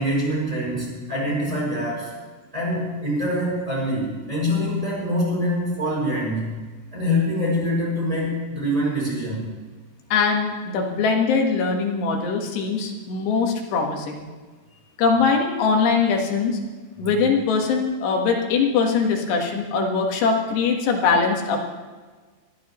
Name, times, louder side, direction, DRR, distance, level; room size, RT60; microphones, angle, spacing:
voice 1, 0.0-2.1 2.5-6.6 6.9-9.5, equal, 5° right, -5 dB, 5.7 m, -24 dB
voice 2, 10.1-14.3 15.0-16.6 17.0-21.7, left 5 dB, 65° left, 1 dB, 3.4 m, -22 dB
22.0 x 14.5 x 3.1 m, 1.4 s
omnidirectional pair, 5.7 m